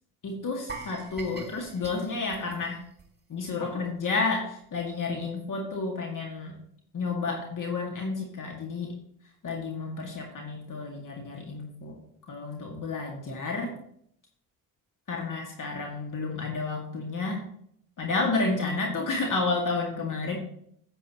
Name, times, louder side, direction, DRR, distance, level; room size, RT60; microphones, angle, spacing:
voice 1, 0.2-2.8 3.3-6.6 6.9-9.0 9.4-12.0 12.3-13.8 15.1-17.5 18.0-20.4, left 3 dB, 45° left, 1 dB, 2.0 m, -31 dB
sound 1, 0.7-3.7 4.0-4.2 4.6-4.7, right 4 dB, 25° right, 2.1 m, -44 dB
9.6 x 8.3 x 2.9 m, 0.67 s
hypercardioid pair, 55°, 43 cm